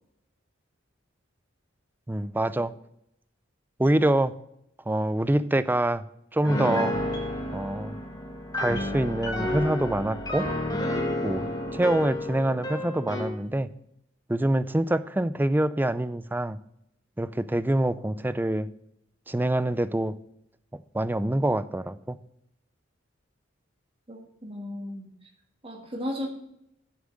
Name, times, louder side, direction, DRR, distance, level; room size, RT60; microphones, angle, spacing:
voice 1, 2.1-2.7 3.8-4.3 4.9-6.0 6.3-7.0 7.5-8.0 8.5-10.5 11.2-13.7 14.3-16.6 17.2-18.7 19.3-20.2 20.9-22.2, right 1 dB, 10° right, 15 dB, 0.4 m, -25 dB
Piano, 6.4-13.4, left 1 dB, 20° left, 1.6 m, -30 dB
voice 2, 24.1-25.1 25.6-26.3, left 1 dB, 30° right, 1 dB, 1.6 m, -35 dB
7.4 x 7.2 x 6.5 m, 0.77 s
head